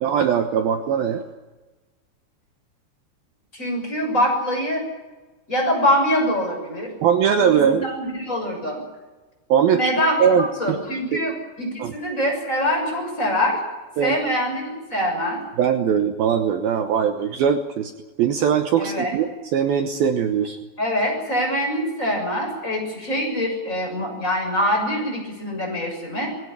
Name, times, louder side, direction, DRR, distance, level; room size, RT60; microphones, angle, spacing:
voice 1, 0.0-1.2 7.0-7.8 9.5-9.9 10.2-10.8 11.1-11.2 11.8-11.9 14.0-14.2 15.6-17.9 18.2-20.6, right 8 dB, 70° right, 6 dB, 2.7 m, -20 dB
voice 2, 3.5-4.8 5.5-6.9 7.4-7.5 7.8-8.8 9.7-13.6 14.0-15.4 18.8-19.1 20.8-26.3, equal, 15° left, 1 dB, 7.1 m, -24 dB
22.0 x 17.0 x 9.9 m, 1.2 s
omnidirectional pair, 4.9 m